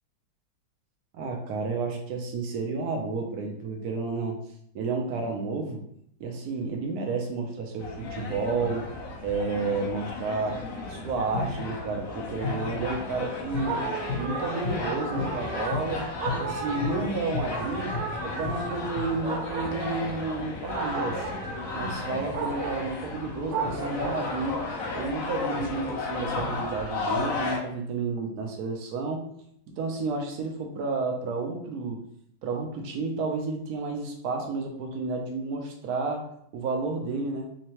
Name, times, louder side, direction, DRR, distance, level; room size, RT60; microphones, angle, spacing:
voice 1, 1.1-4.4 4.7-5.8 6.2-8.9 9.2-10.6 10.9-13.7 14.1-16.1 16.4-21.3 21.7-24.6 24.9-29.3 29.7-32.0 32.4-37.5, right 4 dB, 70° right, 3 dB, 0.9 m, -31 dB
sound 1, 7.8-27.6, left 4 dB, 80° left, 0.7 m, -33 dB
sound 2, 13.5-24.4, right 4 dB, 90° right, 1.6 m, -35 dB
3.6 x 3.2 x 2.9 m, 0.70 s
omnidirectional pair, 2.2 m